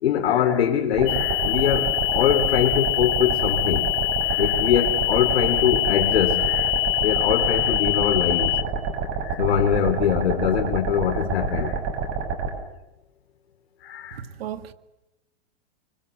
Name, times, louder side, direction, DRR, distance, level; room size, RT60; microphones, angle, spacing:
voice 1, 0.0-3.9 4.2-6.7 7.0-8.5 9.2-11.8 13.8-14.2, left 9 dB, 85° left, 3.0 m, -23 dB
sound 1, 0.9-12.5, right 5 dB, 35° right, 7.1 m, -28 dB
sound 2, 1.1-8.6, left 21 dB, 35° left, 1.1 m, -24 dB
voice 2, 14.1-14.7, right 10 dB, 75° right, 2.1 m, -35 dB
25.5 x 25.0 x 8.0 m
supercardioid pair, 160°, 31 cm